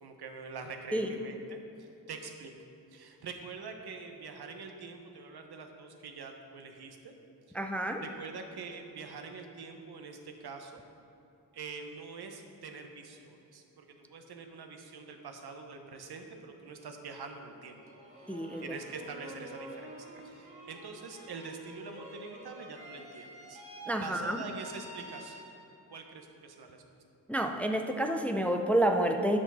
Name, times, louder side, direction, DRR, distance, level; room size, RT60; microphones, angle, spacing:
voice 1, 0.0-2.5 2.9-7.1 7.5-7.6 8.0-10.8 11.5-17.8 18.6-23.6 24.0-25.5 25.9-26.8, right 4 dB, 85° right, 4 dB, 1.0 m, -45 dB
voice 2, 7.6-8.0 18.3-18.6 23.9-24.4 27.3-29.4, right 1 dB, 5° left, 5 dB, 0.4 m, -29 dB
sound 1, 17.7-25.9, right 1 dB, 20° right, 1.7 m, -49 dB
9.8 x 6.2 x 5.6 m, 2.8 s
wide cardioid pair, 145°, 38 cm